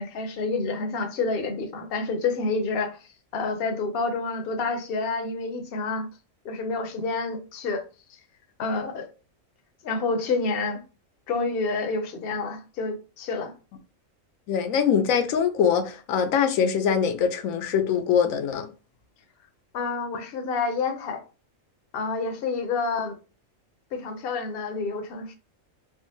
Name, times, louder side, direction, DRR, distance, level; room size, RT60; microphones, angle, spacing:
voice 1, 0.0-3.0 3.3-6.1 6.4-7.8 8.6-9.1 9.8-10.8 11.3-13.5 19.7-21.2 21.9-23.2 23.9-25.3, left 4 dB, 55° left, 0.7 m, -28 dB
voice 2, 14.5-18.7, left 7 dB, 90° left, 1.0 m, -23 dB
3.6 x 2.1 x 2.7 m
omnidirectional pair, 1.4 m